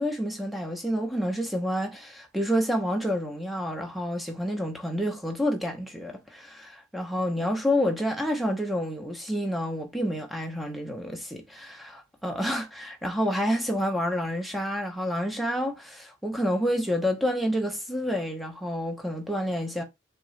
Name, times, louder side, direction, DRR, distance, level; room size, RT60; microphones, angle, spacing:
voice 1, 0.0-19.8, equal, ahead, 0.8 m, -29 dB
3.8 x 3.6 x 3.2 m
head